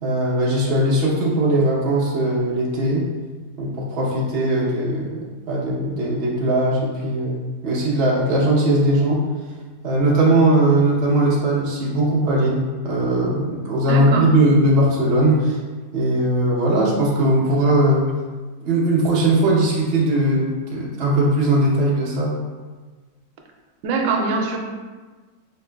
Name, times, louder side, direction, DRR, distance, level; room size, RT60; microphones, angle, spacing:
voice 1, 0.0-3.1 3.6-5.2 5.5-9.2 9.8-15.6 15.9-18.0 18.7-22.4, right 1 dB, 50° right, -5 dB, 0.7 m, -19 dB
voice 2, 13.9-14.2 23.8-24.6, right 4 dB, 80° right, 2 dB, 1.2 m, -22 dB
4.4 x 2.9 x 2.2 m, 1.3 s
omnidirectional pair, 2.0 m